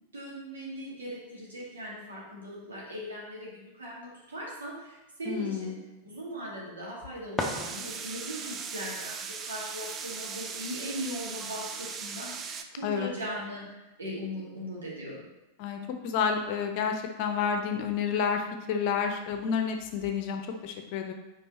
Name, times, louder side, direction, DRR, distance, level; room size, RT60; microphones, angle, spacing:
voice 1, 0.1-5.7 6.0-15.2, equal, 70° right, -5 dB, 2.3 m, -39 dB
voice 2, 5.3-5.8 12.8-13.1 15.6-21.1, left 6 dB, 45° left, 5 dB, 0.7 m, -30 dB
sound 1, 6.8-8.3, left 2 dB, 15° left, 0.8 m, -36 dB
sound 2, 7.4-12.6, right 6 dB, 25° right, 0.5 m, -39 dB
5.4 x 4.7 x 4.2 m, 1.0 s
figure-of-eight pair, 90°, 0 cm